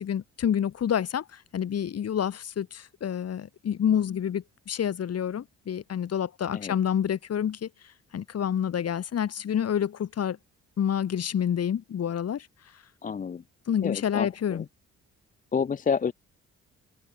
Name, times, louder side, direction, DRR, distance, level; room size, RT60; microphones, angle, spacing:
voice 1, 0.0-7.7 8.1-10.4 10.8-12.5 13.7-14.6, left 9 dB, 55° left, 2.6 m, -28 dB
voice 2, 13.0-13.4 13.8-14.7 15.5-16.1, left 6 dB, 25° left, 0.5 m, -29 dB
cardioid pair, 90°, 30 cm